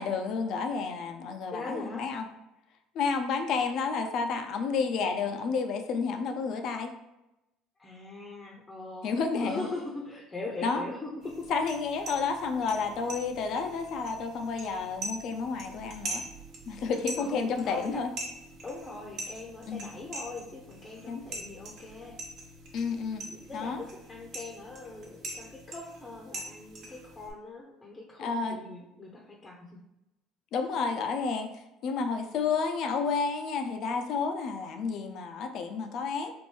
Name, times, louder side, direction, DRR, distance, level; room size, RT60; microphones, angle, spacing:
voice 1, 0.0-2.2 2.9-6.9 9.0-9.7 10.6-10.8 11.5-16.2 16.7-18.1 19.7-19.9 21.1-21.2 22.7-23.3 23.5-23.8 28.2-28.6 30.5-36.3, left 5 dB, 60° left, 6 dB, 0.5 m, -31 dB
voice 2, 1.5-2.1 7.8-11.5 17.2-18.0 18.6-22.2 23.3-29.8, left 2 dB, 20° left, -1 dB, 0.7 m, -41 dB
sound 1, 11.2-27.3, right 2 dB, 55° right, 1.0 m, -43 dB
4.4 x 2.6 x 3.1 m, 0.92 s
supercardioid pair, 100°, 0 cm